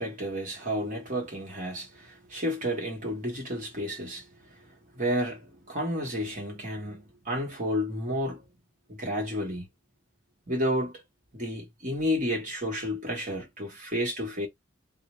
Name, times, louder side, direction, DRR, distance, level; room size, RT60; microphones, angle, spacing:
voice 1, 0.0-4.3 4.9-8.5 8.9-9.7 10.5-11.0 11.3-14.5, equal, 40° right, 1.2 m, -31 dB
2.7 x 2.1 x 3.0 m
head